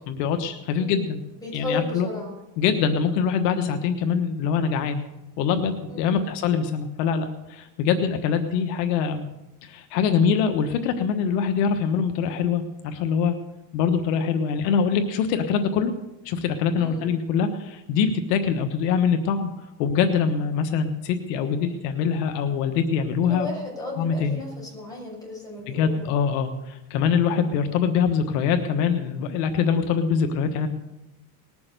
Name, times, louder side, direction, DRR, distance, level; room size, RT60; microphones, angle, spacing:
voice 1, 0.1-1.2 1.5-2.1 2.6-5.0 5.4-9.3 9.6-13.4 13.7-15.9 16.2-19.5 19.8-23.5 24.0-24.4 25.7-30.7, left 6 dB, 80° left, 7 dB, 1.4 m, -24 dB
voice 2, 0.8-1.1 1.4-2.3 5.9-6.2 16.8-17.1 23.2-26.1, left 2 dB, 5° left, -3 dB, 6.4 m, -34 dB
19.5 x 7.0 x 6.7 m, 0.96 s
supercardioid pair, 115°, 49 cm